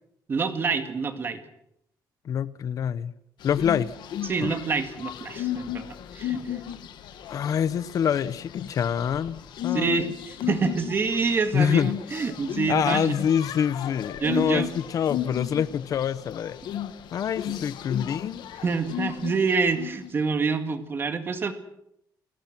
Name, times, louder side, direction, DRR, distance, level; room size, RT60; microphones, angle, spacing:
voice 1, 0.3-1.4 4.2-5.8 6.1-6.6 9.7-10.1 10.5-13.1 14.2-14.7 17.5-17.6 18.6-21.5, right 4 dB, 30° right, 2.0 m, -26 dB
voice 2, 2.2-3.1 3.4-3.9 4.4-4.5 7.3-10.1 11.5-11.9 12.7-16.6 17.1-18.4, left 8 dB, 50° left, 0.9 m, -26 dB
sound 1, 3.4-20.1, left 11 dB, 75° left, 1.6 m, -35 dB
29.0 x 18.0 x 6.1 m
cardioid pair, 170°, 8 cm